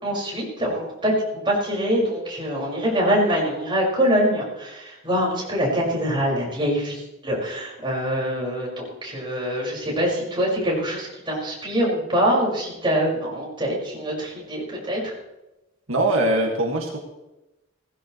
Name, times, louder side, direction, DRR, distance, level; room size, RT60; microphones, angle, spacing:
voice 1, 0.0-15.1, equal, 25° right, -4 dB, 5.7 m, -24 dB
voice 2, 15.9-17.0, right 1 dB, 75° right, 1 dB, 2.0 m, -22 dB
17.0 x 15.5 x 3.2 m, 0.97 s
head